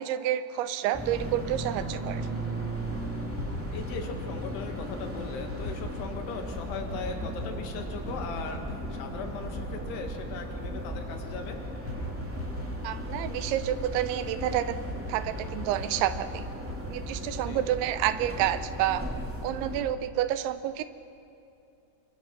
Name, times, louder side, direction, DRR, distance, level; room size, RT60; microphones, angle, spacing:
voice 1, 0.0-2.3 12.8-14.8 15.1-16.4 16.9-19.0 19.4-20.8, right 12 dB, 90° right, 12 dB, 3.2 m, -29 dB
sound 1, 0.9-19.8, right 1 dB, 5° right, 1.0 m, -36 dB
sound 2, 3.4-4.5 5.5-6.1 6.6-7.6 8.1-8.8 9.3-10.0 10.3-10.4 10.6-11.4 11.9-12.8 13.1-13.8 14.4-17.5 17.9-18.3, left 2 dB, 40° left, 6.2 m, -41 dB
voice 2, 3.7-11.6 17.5-17.7, left 5 dB, 70° left, 4 dB, 3.7 m, -38 dB
28.5 x 24.0 x 5.9 m, 2.7 s
omnidirectional pair, 5.2 m